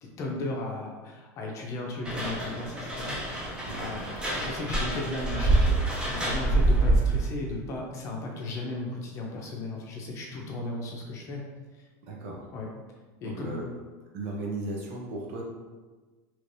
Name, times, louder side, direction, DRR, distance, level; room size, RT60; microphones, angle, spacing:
voice 1, 0.0-4.0 4.3-11.4 11.7-11.8 12.5-12.7 13.2-13.6, left 2 dB, 35° left, -1 dB, 0.6 m, -35 dB
sound 1, 2.0-7.3, right 2 dB, 10° right, 0.5 m, -26 dB
voice 2, 12.1-12.4 13.2-13.6 14.1-15.4, right 2 dB, 65° right, -1 dB, 0.8 m, -36 dB
3.2 x 2.9 x 2.6 m, 1.3 s
supercardioid pair, 155°, 9 cm